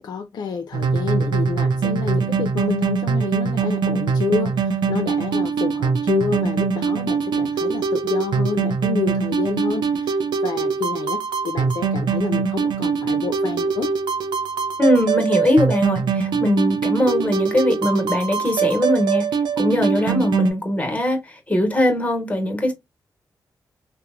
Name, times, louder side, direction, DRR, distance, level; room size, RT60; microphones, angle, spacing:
voice 1, 0.0-13.9, left 6 dB, 70° left, 0.3 m, -28 dB
sound 1, 0.7-20.5, right 5 dB, 80° right, 0.4 m, -23 dB
voice 2, 14.8-19.3 19.6-22.7, left 1 dB, 20° left, 0.9 m, -20 dB
2.9 x 2.0 x 2.3 m
cardioid pair, 65°, 8 cm